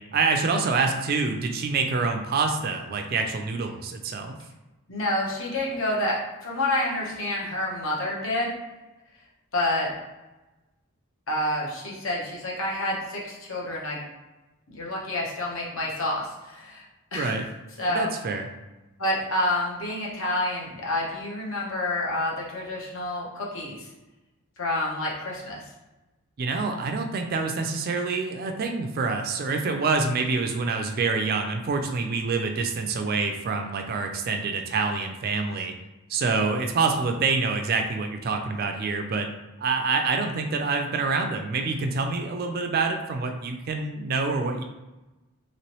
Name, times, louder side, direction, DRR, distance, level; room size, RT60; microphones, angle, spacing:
voice 1, 0.0-4.4 17.2-17.4 17.9-18.5 26.4-35.7 36.1-39.3 39.6-44.6, right 4 dB, 40° right, 5 dB, 0.3 m, -26 dB
voice 2, 4.9-8.5 9.5-9.9 11.3-14.0 14.7-16.8 17.1-17.4 17.8-18.1 19.0-23.9 24.6-25.7, left 1 dB, 60° left, -3 dB, 0.9 m, -28 dB
3.0 x 3.0 x 2.9 m, 1.1 s
head